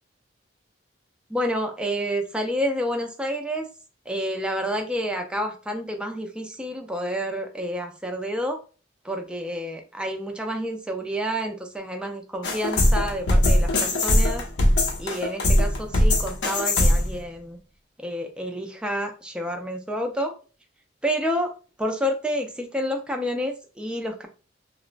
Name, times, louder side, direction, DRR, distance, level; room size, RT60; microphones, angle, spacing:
voice 1, 1.3-3.7 4.1-8.6 9.0-14.5 15.0-17.6 18.0-20.3 21.0-21.5 21.8-24.3, equal, 5° right, 4 dB, 0.4 m, -29 dB
sound 1, 12.4-17.2, left 1 dB, 70° left, 0.6 m, -20 dB
2.9 x 2.1 x 2.5 m, 0.36 s
head